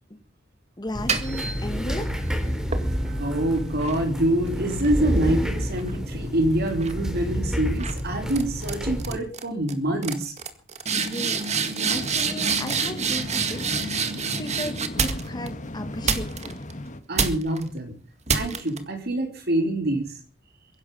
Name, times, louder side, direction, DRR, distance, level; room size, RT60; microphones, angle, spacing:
voice 1, 0.8-2.1 11.0-11.5 11.9-13.8 14.4-16.6, left 1 dB, 20° left, 8 dB, 1.7 m, -35 dB
sound 1, 0.9-9.2, equal, 5° right, 3.6 m, -29 dB
sound 2, 0.9-2.1 2.7-6.3 6.7-7.1 7.8-8.0 8.3-8.7 9.0-9.4 9.7-9.8 10.0-15.5 16.1-16.7 17.2-17.6 18.3-18.8, right 5 dB, 35° right, 1.8 m, -28 dB
voice 2, 3.2-10.3 17.1-18.0 18.3-20.2, right 1 dB, 55° right, 5 dB, 3.3 m, -26 dB
sound 3, 11.9-17.0, left 1 dB, 40° left, 1.6 m, -37 dB
23.0 x 11.0 x 5.4 m, 0.39 s
head